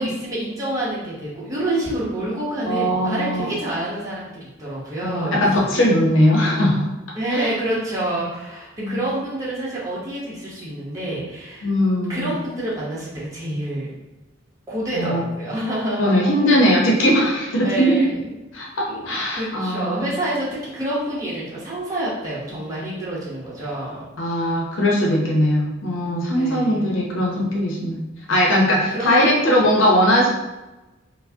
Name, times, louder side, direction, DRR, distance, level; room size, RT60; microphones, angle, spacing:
voice 1, 0.0-5.4 7.1-11.7 12.1-14.0 14.7-16.0 17.6-18.2 18.9-24.1 26.3-26.9 28.9-29.4, right 1 dB, 15° right, -7 dB, 0.9 m, -27 dB
voice 2, 2.7-3.5 5.0-6.9 8.8-9.0 11.6-12.3 14.9-15.2 16.0-18.0 18.5-20.1 24.2-30.3, equal, 75° left, -2 dB, 0.7 m, -19 dB
4.4 x 2.1 x 2.7 m, 1.1 s
head